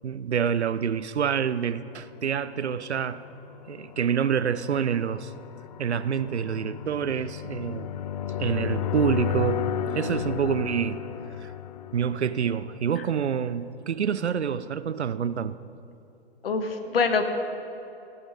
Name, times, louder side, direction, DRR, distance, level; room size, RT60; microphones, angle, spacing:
voice 1, 0.0-3.2 3.7-5.3 5.8-7.9 8.4-9.7 9.9-11.0 11.4-11.5 11.9-15.6, right 7 dB, 80° right, 0.5 m, -27 dB
sound 1, 2.3-13.1, left 8 dB, 40° left, 0.4 m, -33 dB
voice 2, 16.4-17.3, left 4 dB, 60° left, 1.3 m, -25 dB
16.0 x 8.3 x 5.0 m
figure-of-eight pair, 120°, 33 cm